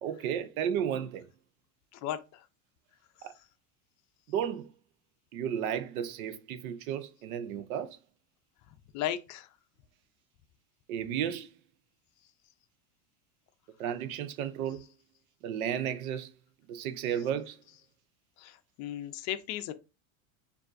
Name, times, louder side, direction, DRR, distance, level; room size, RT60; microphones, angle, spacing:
voice 1, 0.0-1.3 3.2-3.3 4.3-4.7 5.3-8.0 10.9-11.5 13.8-14.9 15.4-16.3 16.7-17.6, right 9 dB, 75° right, 0.7 m, -33 dB
voice 2, 1.9-2.5 3.2-3.3 8.9-9.5 18.4-19.7, left 11 dB, 45° left, 0.5 m, -36 dB
6.4 x 2.6 x 2.5 m
supercardioid pair, 125°, 42 cm